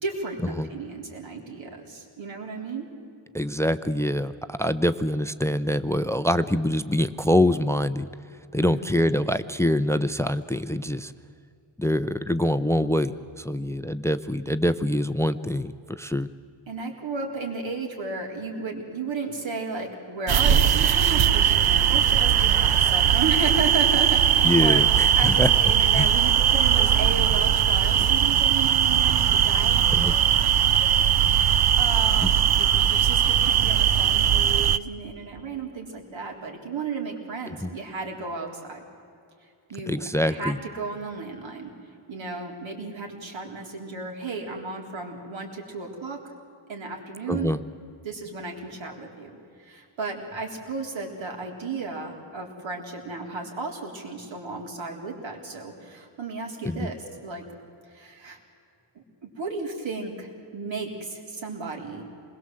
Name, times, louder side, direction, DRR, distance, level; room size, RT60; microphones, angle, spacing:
voice 1, 0.0-0.4 0.7-2.9 8.6-8.8 16.7-24.8 25.1-30.5 30.8-38.8 39.7-41.7 42.1-46.2 46.7-47.5 48.0-49.3 49.6-57.4 57.9-58.4 59.0-62.0, right 4 dB, 65° right, 2 dB, 3.9 m, -34 dB
voice 2, 3.3-8.1 8.5-11.1 11.8-16.3 24.4-25.5 25.9-26.1 29.9-30.2 32.2-32.3 37.5-37.7 39.9-40.6 47.3-47.6 56.6-56.9, left 1 dB, 5° left, 13 dB, 0.5 m, -25 dB
sound 1, 20.3-34.8, right 9 dB, 50° right, 0.6 m, -20 dB
27.5 x 21.0 x 7.7 m, 2.5 s
wide cardioid pair, 145°, 49 cm